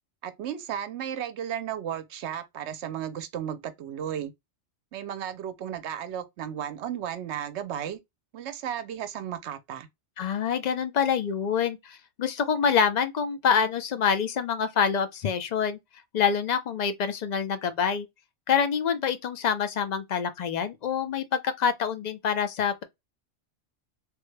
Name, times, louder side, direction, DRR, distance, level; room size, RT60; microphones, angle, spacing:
voice 1, 0.2-4.3 4.9-8.0 8.3-9.9, right 9 dB, 75° right, 0.9 m, -34 dB
voice 2, 10.2-15.8 16.1-18.1 18.5-22.8, left 7 dB, 55° left, 0.5 m, -26 dB
3.4 x 2.1 x 3.1 m
omnidirectional pair, 1.2 m